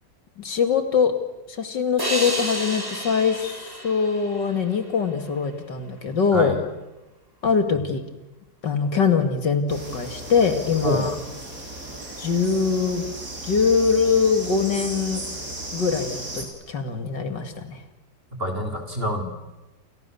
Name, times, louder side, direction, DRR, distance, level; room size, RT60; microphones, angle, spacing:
voice 1, 0.4-1.1 1.5-6.6 7.4-8.0 8.6-11.1 12.2-13.1 13.4-15.2 15.7-17.8, left 5 dB, 75° left, 7 dB, 3.0 m, -23 dB
sound 1, 2.0-5.3, right 1 dB, 10° right, 4.0 m, -31 dB
sound 2, 9.7-16.5, right 1 dB, 50° right, 5.5 m, -35 dB
voice 2, 18.3-19.2, equal, 30° right, 4 dB, 4.1 m, -26 dB
29.5 x 28.0 x 7.1 m, 1.1 s
omnidirectional pair, 1.9 m